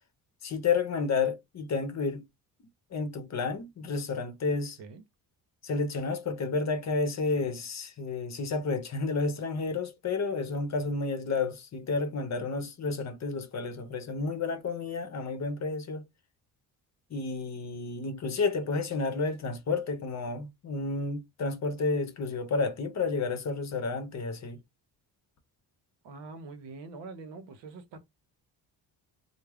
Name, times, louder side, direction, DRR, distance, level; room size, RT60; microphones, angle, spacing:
voice 1, 0.4-2.2 2.9-4.8 5.6-16.0 17.1-24.6, left 4 dB, 40° left, 0.7 m, -31 dB
voice 2, 26.0-28.1, right 3 dB, 80° right, 0.8 m, -44 dB
2.2 x 2.1 x 3.4 m
cardioid pair, 85°, 42 cm